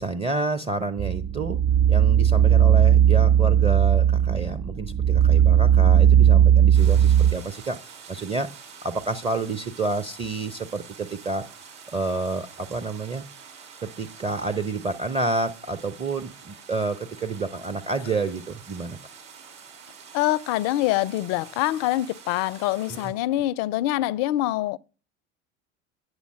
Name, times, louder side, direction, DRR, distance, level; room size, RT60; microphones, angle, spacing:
voice 1, 0.0-1.6 1.9-11.5 11.9-13.2 13.8-19.0 22.9-23.0, right 3 dB, 15° right, 0.6 m, -29 dB
sound 1, 1.0-7.3, right 9 dB, 35° right, 1.4 m, -17 dB
sound 2, 6.7-23.1, right 6 dB, 65° right, 3.8 m, -46 dB
voice 2, 20.1-24.8, left 15 dB, 45° left, 0.4 m, -25 dB
9.6 x 7.1 x 4.2 m
figure-of-eight pair, 75°, 37 cm